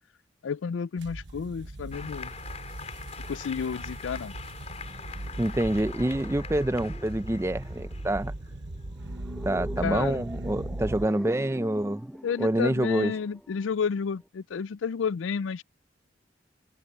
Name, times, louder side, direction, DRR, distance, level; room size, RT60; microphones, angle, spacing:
voice 1, 0.4-2.3 3.3-4.3 9.8-10.2 12.2-15.6, left 6 dB, 90° left, 0.4 m, -31 dB
sound 1, 1.0-11.1, right 1 dB, 70° right, 1.2 m, -38 dB
Applause, 1.9-9.1, left 5 dB, 35° left, 4.7 m, -44 dB
sound 2, 4.5-14.3, equal, ahead, 7.3 m, -46 dB
voice 2, 5.4-8.3 9.4-12.1 12.4-13.1, right 1 dB, 15° right, 0.5 m, -27 dB
open air
head